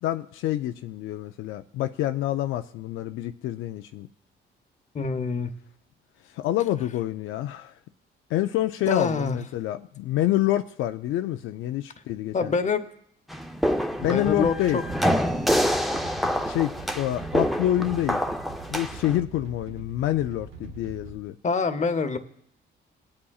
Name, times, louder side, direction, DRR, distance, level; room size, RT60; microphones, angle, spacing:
voice 1, 0.0-4.1 6.4-7.7 8.3-12.5 14.0-14.8 16.2-18.2 18.7-21.3, left 13 dB, 85° left, 8 dB, 0.4 m, -27 dB
voice 2, 4.9-5.5 8.9-9.4 12.3-12.8 14.0-14.8 21.4-22.2, left 4 dB, 35° left, 10 dB, 0.9 m, -25 dB
sound 1, 13.3-19.2, equal, ahead, 0.7 m, -26 dB
sound 2, 13.9-21.2, right 6 dB, 85° right, 1.1 m, -43 dB
20.0 x 8.6 x 2.4 m, 0.69 s
cardioid pair, 90°, 20 cm